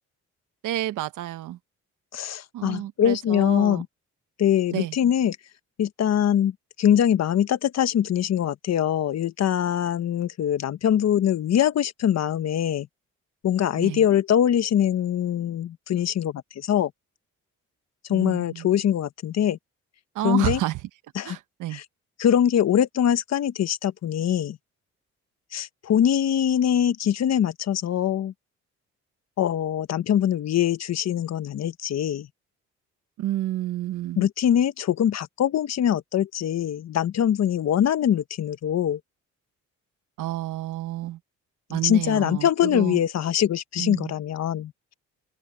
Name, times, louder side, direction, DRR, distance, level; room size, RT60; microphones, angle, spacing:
voice 1, 0.6-1.6 2.5-3.8 4.7-4.9 13.8-14.0 18.1-18.7 20.1-20.8 21.2-21.8 33.2-34.3 40.2-41.2 41.7-43.0 43.8-44.1, right 14 dB, 85° right, 1.2 m, -30 dB
voice 2, 2.1-3.9 4.4-5.4 5.8-12.9 13.4-16.9 18.1-19.6 20.2-20.6 21.1-21.4 21.7-21.8 22.2-24.6 25.5-28.3 29.4-32.3 34.2-39.0 41.7-44.9, left 10 dB, 60° left, 1.2 m, -23 dB
open air
cardioid pair, 90°, 30 cm